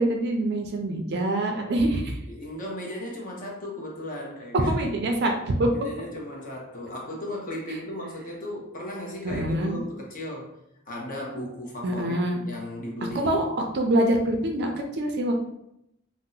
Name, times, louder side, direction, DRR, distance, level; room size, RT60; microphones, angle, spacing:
voice 1, 0.0-2.2 4.7-5.7 9.2-9.8 11.8-12.4 13.1-13.5 13.7-15.4, right 1 dB, 50° right, 3 dB, 0.4 m, -25 dB
voice 2, 2.2-4.7 5.7-10.5 10.9-12.2 12.4-13.4, left 1 dB, 40° left, -2 dB, 0.8 m, -36 dB
2.7 x 2.0 x 3.8 m, 0.80 s
head